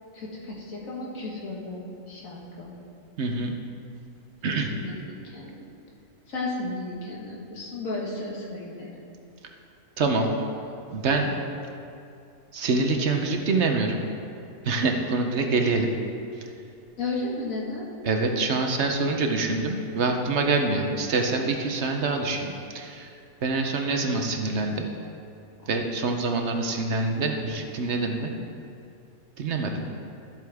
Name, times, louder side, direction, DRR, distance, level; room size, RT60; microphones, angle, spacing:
voice 1, 0.1-2.7 4.7-5.6 6.3-8.9 17.0-17.9 23.5-23.6 25.6-25.7, left 2 dB, 75° left, -4 dB, 2.0 m, -34 dB
voice 2, 3.2-3.5 4.4-4.7 10.0-10.3 10.9-11.3 12.5-14.0 14.6-15.9 16.4-16.5 18.0-23.1 23.4-24.9 25.7-28.3 29.4-29.8, right 3 dB, 60° right, 3 dB, 1.0 m, -25 dB
13.0 x 7.8 x 3.5 m, 2.6 s
omnidirectional pair, 1.4 m